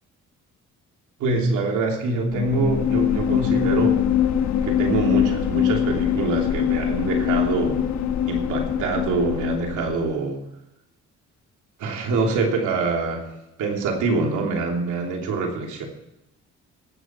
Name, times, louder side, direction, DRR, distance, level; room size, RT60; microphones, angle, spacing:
voice 1, 1.2-4.0 4.6-7.8 8.3-10.4 11.8-13.3 13.6-15.9, right 3 dB, 85° right, 1 dB, 3.0 m, -25 dB
sound 1, 2.3-10.1, left 10 dB, 65° left, 1.2 m, -23 dB
19.5 x 7.8 x 4.5 m, 0.91 s
cardioid pair, 90°, 30 cm